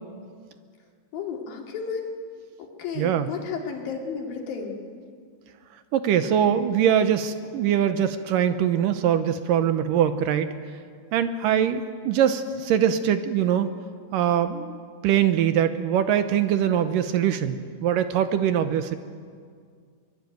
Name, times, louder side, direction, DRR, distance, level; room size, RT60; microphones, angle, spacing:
voice 1, 1.1-2.1 2.6-4.8, left 6 dB, 70° left, 1 dB, 4.3 m, -33 dB
voice 2, 3.0-3.3 5.9-10.5 11.1-13.7 14.1-14.8 15.0-19.0, right 9 dB, 75° right, 10 dB, 2.3 m, -22 dB
23.5 x 21.5 x 9.3 m, 2.1 s
omnidirectional pair, 4.3 m